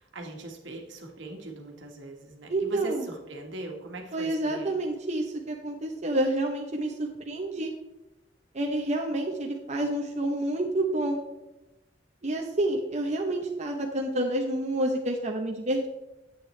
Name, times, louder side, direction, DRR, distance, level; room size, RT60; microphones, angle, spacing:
voice 1, 0.0-4.8, right 2 dB, 75° right, 2 dB, 1.5 m, -40 dB
voice 2, 2.5-3.1 4.1-7.7 8.5-11.2 12.2-15.9, right 1 dB, 40° right, 2 dB, 0.8 m, -29 dB
9.9 x 8.1 x 3.2 m, 0.97 s
head